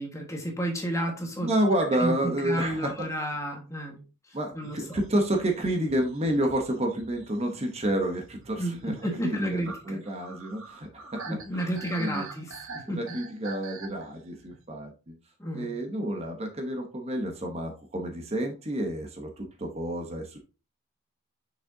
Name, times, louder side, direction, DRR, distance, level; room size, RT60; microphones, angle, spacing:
voice 1, 0.0-1.5 2.0-2.1 2.4-4.0 4.5-5.0 8.6-8.8 9.0-10.0 11.3-13.0 15.4-15.7, right 1 dB, 15° left, 2 dB, 1.4 m, -31 dB
voice 2, 1.4-3.4 4.3-12.3 12.9-15.1 15.5-20.4, right 1 dB, 30° right, 3 dB, 0.9 m, -30 dB
sound 1, 4.6-14.6, right 4 dB, 75° right, 1.2 m, -46 dB
6.4 x 6.2 x 2.7 m, 0.33 s
head